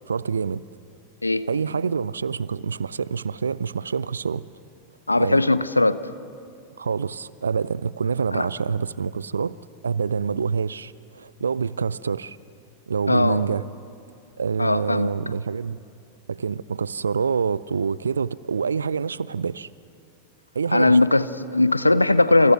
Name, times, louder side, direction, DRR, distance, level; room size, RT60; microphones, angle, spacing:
voice 1, 0.1-0.6 1.5-4.5 5.2-5.4 6.8-9.6 9.8-12.4 12.9-13.7 14.4-15.8 16.3-19.7 20.5-21.0, right 6 dB, 70° right, 0.5 m, -26 dB
voice 2, 5.1-6.0 8.3-8.5 13.1-13.4 14.6-15.1 20.7-22.5, left 2 dB, 85° left, 0.8 m, -19 dB
28.5 x 28.0 x 6.0 m
figure-of-eight pair, 90°, 0 cm